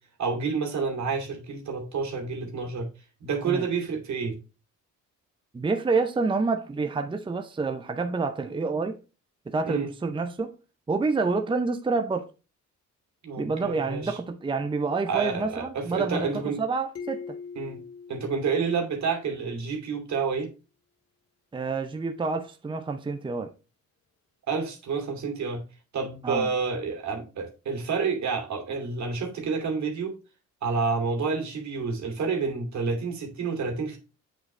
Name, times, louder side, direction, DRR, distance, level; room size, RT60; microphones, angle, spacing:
voice 1, 0.2-2.9 3.2-4.4 9.6-9.9 13.2-14.2 15.1-16.6 17.6-17.8 18.1-20.5 24.5-25.6 25.9-30.1 30.6-34.0, right 5 dB, 65° right, 2.6 m, -29 dB
voice 2, 5.5-9.0 9.5-10.5 10.9-12.3 13.4-17.4 21.5-23.5 26.2-26.5, right 4 dB, 15° right, 0.6 m, -28 dB
sound 1, 16.9-19.5, left 5 dB, 50° left, 2.1 m, -42 dB
7.8 x 7.3 x 3.3 m
cardioid pair, 125°, 30 cm